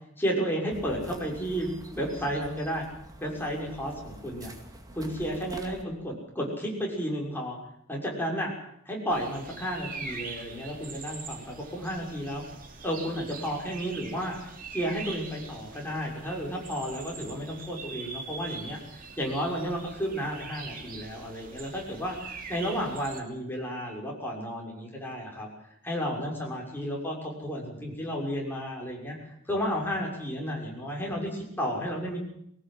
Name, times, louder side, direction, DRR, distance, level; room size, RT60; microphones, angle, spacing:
voice 1, 0.2-2.9 3.2-4.5 4.9-7.6 7.9-8.5 8.9-12.4 12.8-14.4 14.7-18.8 19.2-25.5 25.8-29.2 29.5-32.2, equal, 10° left, -2 dB, 6.3 m, -32 dB
sound 1, 0.7-5.8, right 1 dB, 20° right, 2.5 m, -47 dB
sound 2, 9.1-23.2, right 4 dB, 45° right, 2.8 m, -43 dB
22.0 x 18.5 x 7.8 m, 0.72 s
head